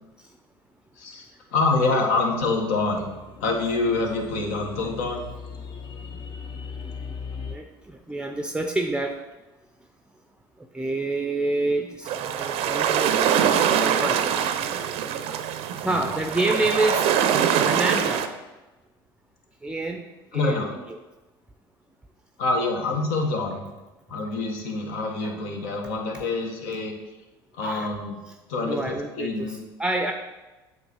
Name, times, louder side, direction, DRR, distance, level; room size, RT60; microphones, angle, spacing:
voice 1, 1.0-3.1 3.4-5.3 15.9-16.0 20.3-20.7 22.4-23.6 24.1-26.9 27.5-28.2 28.5-29.6, left 3 dB, 70° left, 2 dB, 1.4 m, -26 dB
sound 1, 2.3-7.6, left 5 dB, 40° left, 0.8 m, -39 dB
voice 2, 6.5-9.2 10.6-13.1 13.8-14.2 15.4-15.5 15.8-17.1 17.6-18.3 19.6-20.1 20.3-21.0 25.2-25.4 27.6-27.9 28.6-30.1, right 2 dB, 10° right, 4 dB, 0.6 m, -28 dB
sound 2, 12.1-18.3, right 8 dB, 60° right, 0.6 m, -23 dB
8.0 x 3.2 x 5.4 m, 1.1 s
hypercardioid pair, 75°, 12 cm